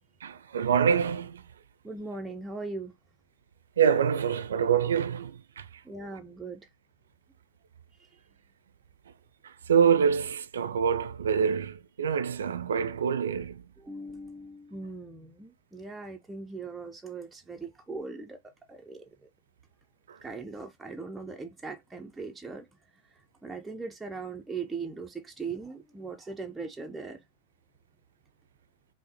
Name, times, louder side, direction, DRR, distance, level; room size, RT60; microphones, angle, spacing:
voice 1, 0.2-1.4 3.8-5.7 6.0-6.2 9.4-13.6 20.1-20.2, right 7 dB, 65° right, 0.4 m, -26 dB
voice 2, 1.8-2.9 5.8-6.7 8.0-8.1 13.8-19.3 20.2-22.7 23.4-27.2, right 4 dB, 10° right, 0.4 m, -39 dB
5.2 x 2.0 x 2.7 m
figure-of-eight pair, 90°, 0 cm